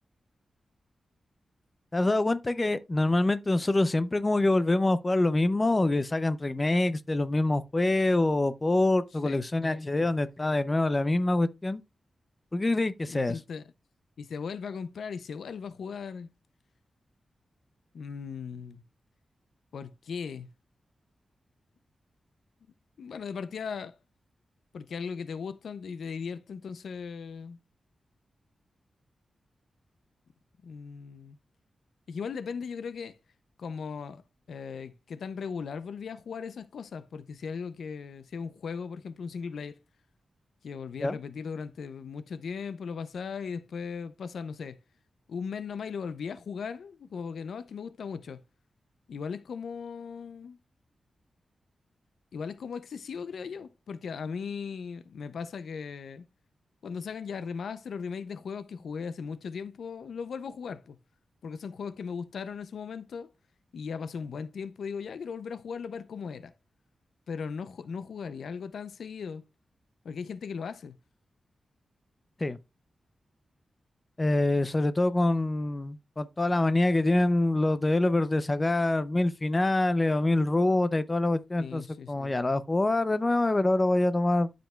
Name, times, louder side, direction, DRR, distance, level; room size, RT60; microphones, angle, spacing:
voice 1, 1.9-11.8 12.5-13.4 41.0-41.2 72.4-72.6 74.2-81.8 82.1-84.5, left 2 dB, 25° left, 0.5 m, -25 dB
voice 2, 13.1-13.6 14.2-16.3 17.9-18.8 19.7-20.5 23.0-23.9 24.7-27.6 30.6-31.4 32.1-33.2 33.6-34.2 34.5-39.8 40.6-44.8 45.3-48.4 49.1-50.6 52.3-56.3 56.8-61.0 61.4-63.3 63.7-66.5 67.3-69.4 70.0-71.0 81.6-82.4, left 6 dB, 85° left, 0.5 m, -38 dB
12.0 x 5.1 x 2.3 m
wide cardioid pair, 120°, 0 cm